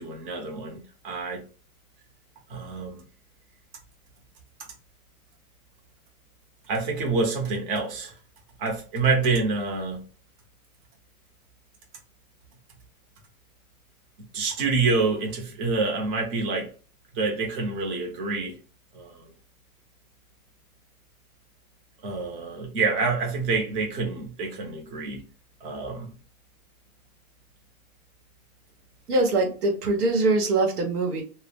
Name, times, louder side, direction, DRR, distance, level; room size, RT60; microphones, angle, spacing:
voice 1, 0.0-1.4 2.5-3.0 6.7-8.1 8.6-10.0 14.3-16.7 17.1-18.5 18.9-19.3 22.0-25.2 25.6-26.1, right 4 dB, 40° right, 0.7 m, -27 dB
voice 2, 29.1-31.2, right 2 dB, 90° right, 0.9 m, -23 dB
2.1 x 2.0 x 3.2 m
hypercardioid pair, 150°, 44 cm